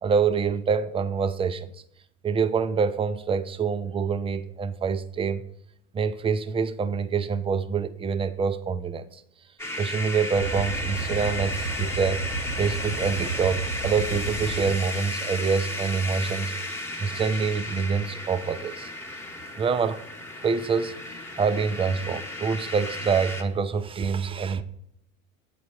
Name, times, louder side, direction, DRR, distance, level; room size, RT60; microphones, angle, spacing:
voice 1, 0.0-1.7 2.2-5.4 5.9-9.2 9.8-12.2 12.6-18.9 19.6-20.0 20.4-20.9 21.4-24.6, right 5 dB, 15° right, 0.4 m, -26 dB
sound 1, 9.6-23.4, left 1 dB, 5° left, 1.2 m, -34 dB
sound 2, 10.3-14.7, right 4 dB, 85° left, 1.3 m, -32 dB
8.5 x 4.2 x 6.2 m
hypercardioid pair, 85°, 41 cm